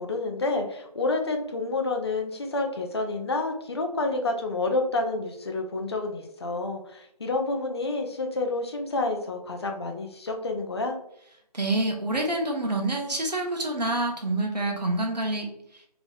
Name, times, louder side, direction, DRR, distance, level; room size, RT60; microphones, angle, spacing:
voice 1, 0.0-11.0, left 2 dB, 40° left, 3 dB, 0.5 m, -29 dB
voice 2, 11.5-15.8, right 2 dB, 85° right, 1 dB, 0.9 m, -27 dB
2.9 x 2.9 x 2.3 m, 0.74 s
figure-of-eight pair, 150°, 21 cm